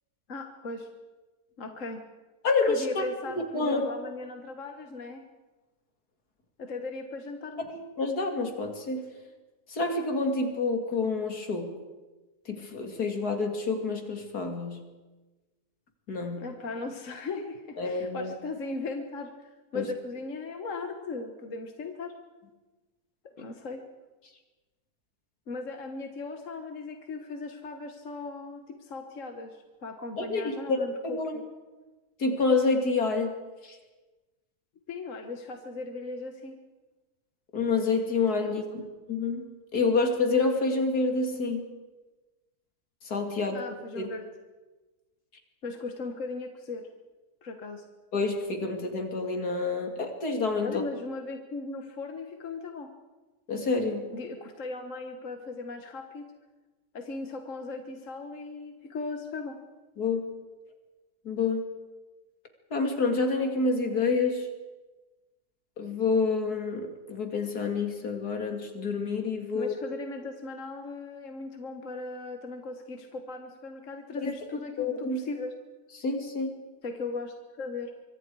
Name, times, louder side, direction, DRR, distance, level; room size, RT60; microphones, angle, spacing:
voice 1, 0.3-0.9 1.6-2.0 2.7-5.2 6.6-7.7 16.4-22.1 23.4-23.8 25.5-31.4 34.9-36.5 38.4-38.9 43.5-44.3 45.6-46.9 47.4-47.8 50.6-52.9 54.1-56.3 56.9-59.6 69.5-75.5 76.8-77.9, left 3 dB, 50° left, 5 dB, 1.7 m, -38 dB
voice 2, 2.4-3.1 3.5-3.9 7.7-9.0 9.7-11.7 12.5-14.8 16.1-16.5 17.8-18.3 19.7-19.9 30.2-30.8 31.0-31.3 32.2-33.3 33.6-33.8 37.5-38.6 39.1-39.5 39.7-41.6 43.0-43.6 43.9-44.1 48.1-50.8 53.5-54.1 60.0-60.3 61.2-61.7 62.7-64.5 65.8-69.7 74.2-74.3 74.8-75.2 76.0-76.6, left 3 dB, 65° left, 4 dB, 3.0 m, -28 dB
24.5 x 24.5 x 4.8 m, 1.2 s
omnidirectional pair, 1.8 m